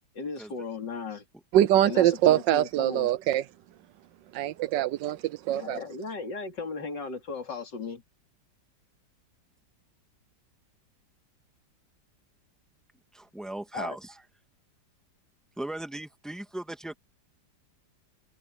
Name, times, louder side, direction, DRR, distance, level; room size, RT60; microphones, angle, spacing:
voice 1, 0.1-1.2 1.8-3.1 5.5-8.0 13.7-14.0, left 4 dB, 75° left, 3.7 m, -36 dB
voice 2, 1.5-3.4 4.3-5.8, right 12 dB, 80° right, 1.4 m, -23 dB
voice 3, 13.1-14.1 15.6-16.9, right 1 dB, ahead, 2.2 m, -37 dB
omnidirectional pair, 1.9 m